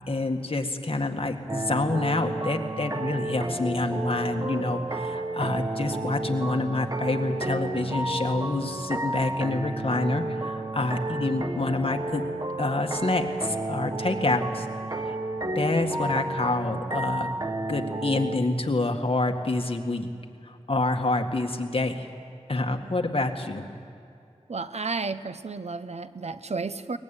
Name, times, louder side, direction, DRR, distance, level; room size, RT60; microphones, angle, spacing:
voice 1, 0.1-12.2 12.6-14.7 15.1-15.2 15.6-17.3 17.7-20.1 20.7-22.1 22.5-23.7, left 2 dB, 55° left, 4 dB, 1.8 m, -27 dB
sound 1, 1.5-18.4, right 2 dB, 30° right, 1.2 m, -32 dB
voice 2, 24.5-27.0, right 4 dB, 70° right, 12 dB, 0.8 m, -32 dB
22.5 x 20.0 x 9.0 m, 2.4 s
wide cardioid pair, 70°, 12 cm